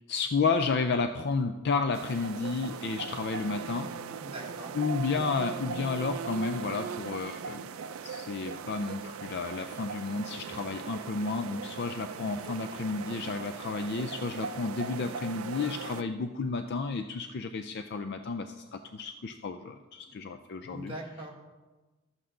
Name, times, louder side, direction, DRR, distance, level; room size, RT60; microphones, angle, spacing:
voice 1, 0.1-3.9 4.7-7.7 8.0-20.9, left 4 dB, 50° left, 8 dB, 0.4 m, -32 dB
sound 1, 1.9-16.0, right 6 dB, 80° right, 0.4 m, -39 dB
voice 2, 4.2-4.7 20.1-20.2 20.7-21.4, right 1 dB, 25° right, -2 dB, 1.6 m, -42 dB
12.0 x 7.9 x 3.8 m, 1.2 s
head